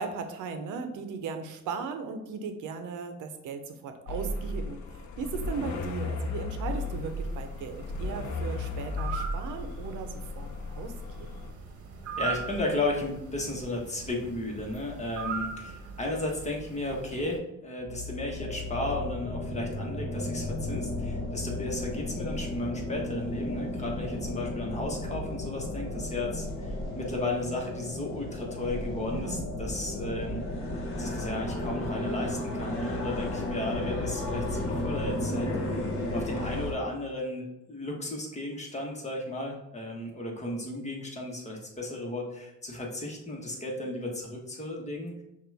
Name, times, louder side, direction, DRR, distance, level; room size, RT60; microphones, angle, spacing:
voice 1, 0.0-4.8 5.2-10.5 10.8-11.4 29.1-29.4, right 5 dB, 85° right, 7 dB, 0.7 m, -37 dB
sound 1, 4.1-11.5, left 2 dB, 70° left, 0.7 m, -35 dB
sound 2, 6.7-17.4, right 5 dB, 55° right, 1.0 m, -40 dB
voice 2, 12.2-30.4 31.0-45.1, left 2 dB, 25° left, -1 dB, 1.3 m, -34 dB
sound 3, 17.8-36.7, left 1 dB, 45° left, 1.3 m, -34 dB
5.9 x 2.5 x 3.4 m, 0.86 s
cardioid pair, 90°, 30 cm